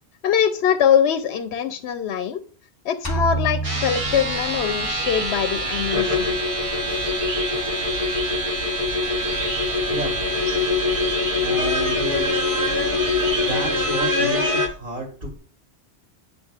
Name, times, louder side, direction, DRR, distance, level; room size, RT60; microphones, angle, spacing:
voice 1, 0.2-2.4 2.8-6.3, left 8 dB, 80° left, 10 dB, 0.8 m, -22 dB
sound 1, 3.0-4.9, right 2 dB, 15° left, 1.1 m, -28 dB
sound 2, 3.6-14.7, left 2 dB, 35° right, 0.9 m, -24 dB
sound 3, 3.9-13.9, right 1 dB, 85° right, 1.4 m, -34 dB
voice 2, 9.8-10.3 11.4-12.3 13.4-15.4, right 2 dB, 55° right, 1 dB, 1.8 m, -32 dB
8.7 x 6.5 x 2.4 m, 0.40 s
omnidirectional pair, 1.1 m